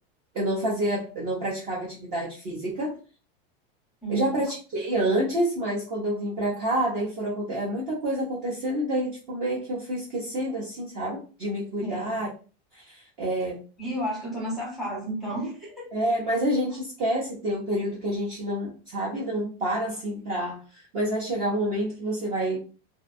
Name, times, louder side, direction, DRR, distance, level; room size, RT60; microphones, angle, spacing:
voice 1, 0.3-3.0 4.1-12.3 12.7-13.6 15.9-22.6, right 1 dB, 30° right, -5 dB, 0.5 m, -28 dB
voice 2, 4.0-4.4 11.8-12.2 13.8-16.0 16.7-16.8, right 1 dB, ahead, -6 dB, 0.8 m, -32 dB
2.5 x 2.2 x 2.4 m, 0.36 s
supercardioid pair, 175°, 30 cm